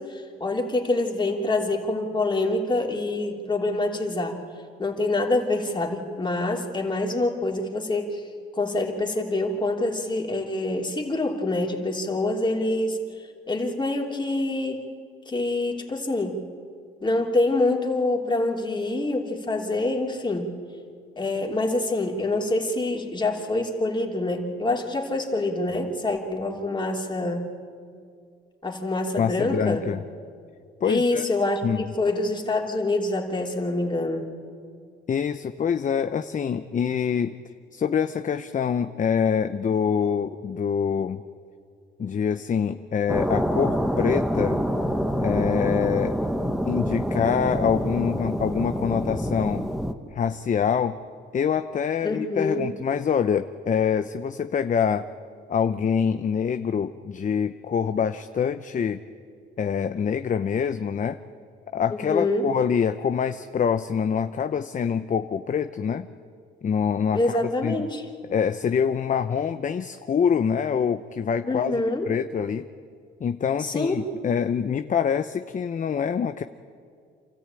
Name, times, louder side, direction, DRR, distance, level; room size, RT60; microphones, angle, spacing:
voice 1, 0.0-4.4 4.8-8.2 8.5-13.0 13.5-14.8 15.3-16.4 17.0-20.5 21.2-27.5 28.6-29.8 30.8-34.3 52.0-52.7 61.9-62.5 67.1-68.0 71.4-72.1 73.6-74.1, left 2 dB, 25° left, 1 dB, 3.2 m, -26 dB
voice 2, 29.2-30.0 30.8-31.3 31.6-31.8 35.1-37.4 37.7-41.2 42.0-44.6 45.2-46.2 46.7-49.7 50.1-51.0 51.3-55.1 55.5-59.0 59.6-61.2 61.7-66.1 66.6-67.3 67.6-67.9 68.3-71.8 72.1-72.7 73.2-76.4, left 7 dB, 40° left, 9 dB, 0.7 m, -25 dB
sound 1, 43.1-49.9, equal, ahead, 1.4 m, -26 dB
28.0 x 14.0 x 9.0 m, 2.2 s
cardioid pair, 90°, 20 cm